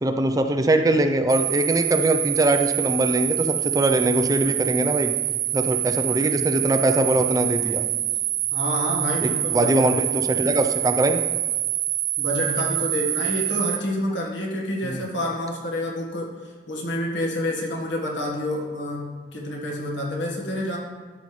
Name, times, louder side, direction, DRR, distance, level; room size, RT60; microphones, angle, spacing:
voice 1, 0.0-5.1 5.5-7.8 9.2-11.2 14.8-15.0, right 1 dB, 20° right, 6 dB, 0.5 m, -22 dB
sound 1, 1.3-13.8, right 14 dB, 70° right, 0.5 m, -26 dB
voice 2, 8.5-9.8 12.2-16.4 16.7-20.8, left 1 dB, 85° left, -2 dB, 1.5 m, -28 dB
12.5 x 5.3 x 3.2 m, 1.5 s
head